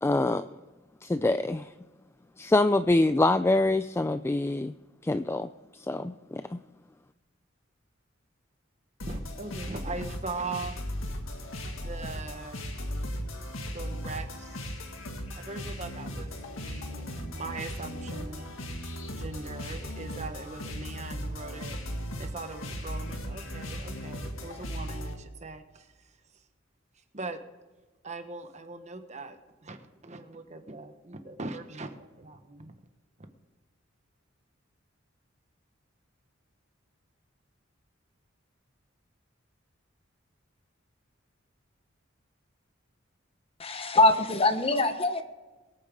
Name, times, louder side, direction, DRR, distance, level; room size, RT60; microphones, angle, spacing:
voice 1, 0.0-0.5 1.0-1.7 2.4-4.7 5.0-6.6, left 2 dB, 15° left, 11 dB, 0.3 m, -25 dB
sound 1, 9.0-25.1, equal, 85° left, 2.0 m, -37 dB
voice 2, 9.1-10.8 11.7-12.7 13.7-14.8 15.4-16.3 16.6-18.5 19.1-25.9 27.1-27.4 28.0-32.8, right 3 dB, 35° right, 7 dB, 1.2 m, -40 dB
voice 3, 43.6-45.2, left 2 dB, 30° left, 8 dB, 1.0 m, -23 dB
24.0 x 8.8 x 3.6 m, 1.2 s
head